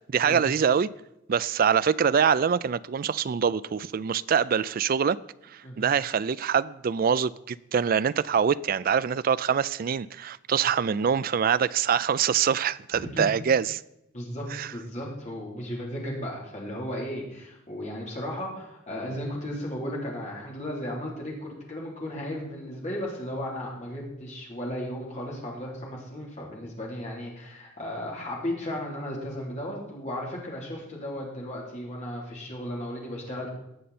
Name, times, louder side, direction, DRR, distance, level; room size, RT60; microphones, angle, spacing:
voice 1, 0.1-0.9 1.3-5.2 5.4-13.8 14.5-14.7, right 7 dB, 45° right, 0.3 m, -24 dB
voice 2, 14.1-14.4 14.7-33.5, left 1 dB, 35° left, 3.4 m, -35 dB
19.0 x 6.8 x 4.2 m
head